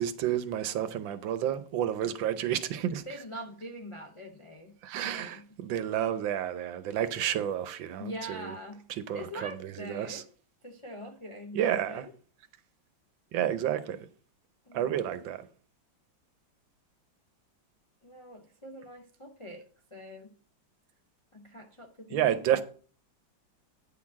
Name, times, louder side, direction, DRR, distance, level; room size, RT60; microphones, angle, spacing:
voice 1, 0.0-3.1 4.8-8.5 9.0-10.2 11.5-12.1 13.3-14.1 14.7-15.5 22.1-22.6, right 10 dB, 80° right, 1.5 m, -30 dB
voice 2, 3.1-5.5 8.0-8.9 9.1-10.2 10.6-12.1 14.7-15.1 18.0-19.7 19.9-20.3 21.3-22.6, equal, 55° left, 0.3 m, -43 dB
9.1 x 4.0 x 7.2 m
omnidirectional pair, 2.1 m